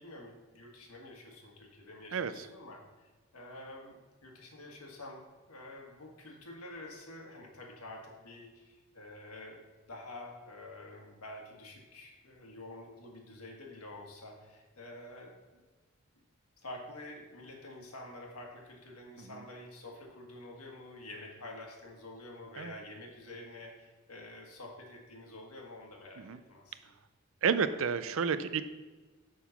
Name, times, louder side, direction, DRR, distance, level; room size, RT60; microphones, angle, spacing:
voice 1, 0.0-15.6 16.6-26.9, left 1 dB, 85° left, 1 dB, 1.7 m, -48 dB
voice 2, 2.1-2.5 19.2-19.3 22.6-22.7 26.2-26.4 27.4-28.7, right 6 dB, 65° right, 12 dB, 0.4 m, -31 dB
6.3 x 5.7 x 5.8 m, 1.3 s
head